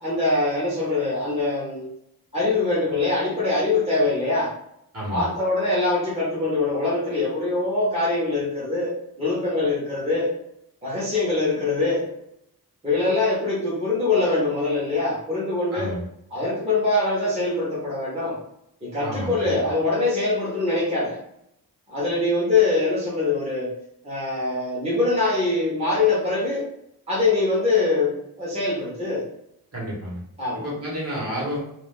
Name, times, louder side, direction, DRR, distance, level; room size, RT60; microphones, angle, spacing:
voice 1, 0.0-1.9 2.3-4.5 5.1-10.3 10.8-12.0 12.8-15.9 16.3-18.4 18.8-21.2 21.9-23.7 24.0-26.6 27.1-29.2 30.4-30.7, left 3 dB, 15° right, -8 dB, 0.8 m, -23 dB
voice 2, 4.9-5.2 15.7-16.0 19.0-19.5 29.7-30.2 30.6-31.6, equal, 40° right, -6 dB, 1.1 m, -30 dB
2.4 x 2.3 x 3.5 m, 0.79 s
wide cardioid pair, 150°, 38 cm